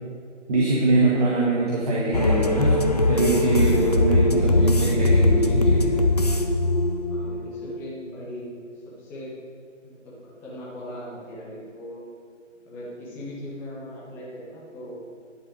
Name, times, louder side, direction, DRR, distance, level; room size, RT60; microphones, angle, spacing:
voice 1, 0.5-6.0, right 2 dB, 30° right, -4 dB, 1.5 m, -23 dB
sound 1, 2.1-7.8, left 2 dB, 35° left, 0.4 m, -21 dB
voice 2, 7.1-8.5 9.0-9.3 9.8-12.0 12.6-15.0, left 1 dB, 5° left, -6 dB, 0.9 m, -39 dB
10.5 x 7.6 x 4.8 m, 2.1 s
figure-of-eight pair, 150°, 38 cm